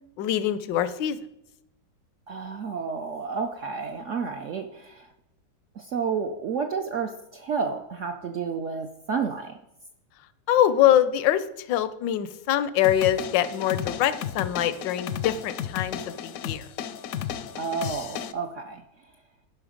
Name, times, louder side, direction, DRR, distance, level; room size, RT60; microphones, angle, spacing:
voice 1, 0.2-1.2 10.5-16.7, left 11 dB, 85° left, 14 dB, 1.3 m, -24 dB
voice 2, 2.3-5.1 5.8-9.6 17.6-18.8, right 5 dB, 70° right, 5 dB, 0.7 m, -31 dB
sound 1, 12.8-18.3, left 9 dB, 70° left, 0.8 m, -34 dB
11.5 x 5.5 x 5.0 m, 0.87 s
omnidirectional pair, 1.9 m